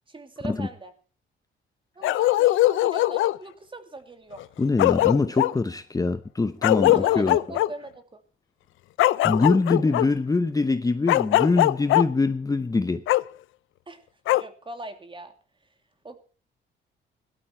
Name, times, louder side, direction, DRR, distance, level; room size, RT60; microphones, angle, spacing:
voice 1, 0.1-0.9 2.0-4.4 6.9-8.2 13.9-14.0 14.3-15.3 16.0-16.2, right 2 dB, 25° right, 2.6 m, -40 dB
Bark, 2.0-3.4 4.4-4.5 4.8-5.5 6.6-7.7 9.0-10.1 11.1-12.0 13.1-13.2 14.3-14.4, left 16 dB, 80° left, 0.6 m, -20 dB
voice 2, 4.6-7.4 9.2-13.0, left 3 dB, 20° left, 0.8 m, -23 dB
17.5 x 12.0 x 4.3 m
cardioid pair, 90°, 20 cm